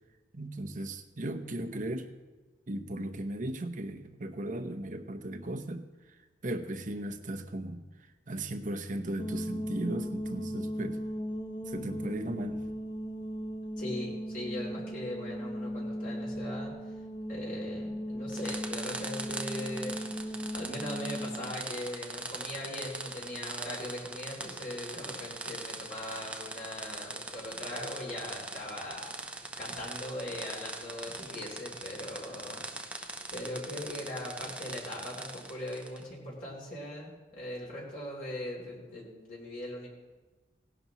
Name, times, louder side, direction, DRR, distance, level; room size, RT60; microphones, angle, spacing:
voice 1, 0.3-2.1 2.7-5.9 6.4-7.8 8.3-11.0 11.7-12.6, right 1 dB, 45° right, 7 dB, 0.9 m, -36 dB
sound 1, 9.2-21.6, equal, 25° left, 0.7 m, -37 dB
voice 2, 13.8-16.7 17.3-20.0 20.5-29.1 29.6-32.8 33.3-39.9, left 1 dB, 50° left, -4 dB, 3.2 m, -40 dB
sound 2, 18.3-36.1, right 2 dB, 5° right, 0.7 m, -41 dB
18.0 x 11.0 x 3.0 m, 1.2 s
head